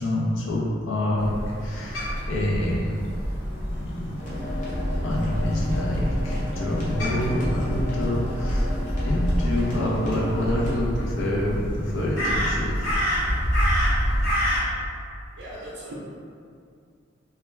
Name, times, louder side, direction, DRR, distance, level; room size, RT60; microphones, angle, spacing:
voice 1, 0.0-1.3 1.6-2.8 3.7-4.7 5.0-8.7 9.0-12.9, left 1 dB, 90° left, -4 dB, 0.6 m, -27 dB
Crow, 1.2-14.6, equal, 65° left, 0.9 m, -27 dB
sound 1, 4.2-10.7, left 1 dB, 40° left, 0.6 m, -34 dB
voice 2, 15.4-15.9, right 1 dB, 85° right, -8 dB, 0.4 m, -38 dB
2.2 x 2.2 x 3.1 m, 2.3 s
head